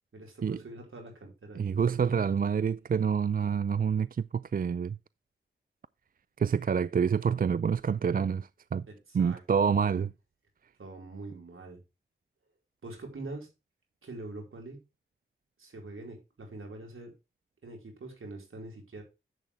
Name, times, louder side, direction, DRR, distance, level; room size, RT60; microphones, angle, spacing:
voice 1, 0.1-2.3 8.9-10.0 10.8-11.8 12.8-13.5 14.0-14.8 15.6-17.1 17.6-19.0, right 2 dB, 75° right, 4.6 m, -44 dB
voice 2, 1.6-5.0 6.4-8.9 9.1-10.1, right 7 dB, 45° right, 0.4 m, -27 dB
10.5 x 7.7 x 3.4 m
cardioid pair, 55°, 21 cm